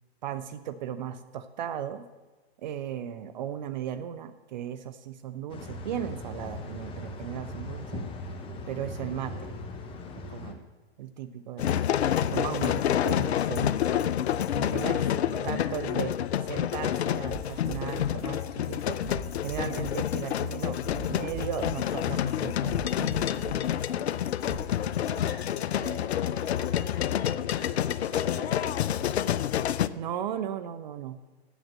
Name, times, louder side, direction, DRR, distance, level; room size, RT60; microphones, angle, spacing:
voice 1, 0.2-2.1 2.6-8.0 8.7-9.5 10.3-10.6 11.0-11.9 12.2-13.8 14.5-15.0 15.5-19.0 19.4-23.1 30.0-31.2, right 9 dB, 45° right, 12 dB, 0.5 m, -36 dB
sound 1, 5.5-10.5, left 2 dB, 15° left, 0.9 m, -39 dB
sound 2, 11.6-29.9, left 10 dB, 75° left, 0.5 m, -28 dB
voice 2, 15.0-15.7 25.0-29.1, left 3 dB, 35° left, 0 dB, 2.9 m, -42 dB
sound 3, 17.3-24.5, right 5 dB, 10° right, 2.8 m, -41 dB
8.2 x 7.2 x 7.4 m, 1.2 s
hypercardioid pair, 125°, 32 cm